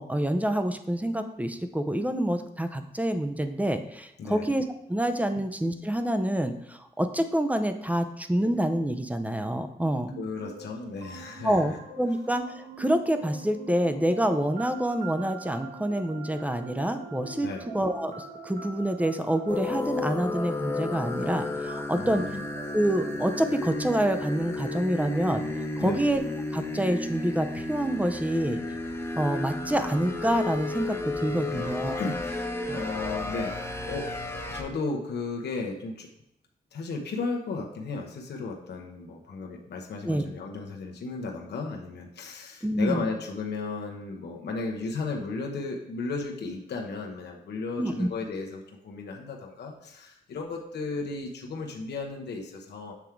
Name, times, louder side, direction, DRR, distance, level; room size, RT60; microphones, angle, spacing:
voice 1, 0.0-10.1 11.4-17.5 17.7-22.2 22.7-25.4 25.8-26.2 26.5-28.6 29.2-32.0 32.7-32.8 40.0-40.2 42.6-43.1 47.8-48.1, right 1 dB, 10° right, 8 dB, 0.6 m, -27 dB
sound 1, 10.1-29.6, right 4 dB, 70° right, 1.2 m, -45 dB
voice 2, 10.2-11.8 17.4-17.6 21.9-22.4 25.8-26.0 31.3-31.6 32.0-33.5 33.9-34.1 34.5-36.1 36.7-52.9, left 3 dB, 80° left, 0 dB, 1.0 m, -34 dB
sound 2, 19.5-34.6, left 2 dB, 15° left, 0.9 m, -33 dB
7.1 x 3.6 x 4.5 m, 0.82 s
cardioid pair, 85°, 17 cm